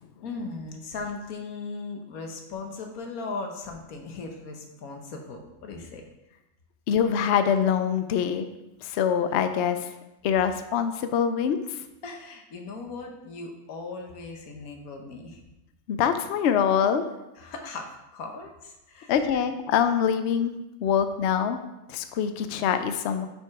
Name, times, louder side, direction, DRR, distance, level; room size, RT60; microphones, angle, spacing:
voice 1, 0.2-6.0 12.0-15.4 17.4-19.2, left 3 dB, 90° left, 3 dB, 1.4 m, -38 dB
voice 2, 6.9-8.5 8.8-9.8 10.2-11.6 15.9-17.0 19.1-20.5 20.8-21.6 21.9-23.3, left 8 dB, 65° left, 9 dB, 0.7 m, -24 dB
5.4 x 5.3 x 4.7 m, 0.94 s
omnidirectional pair, 1.5 m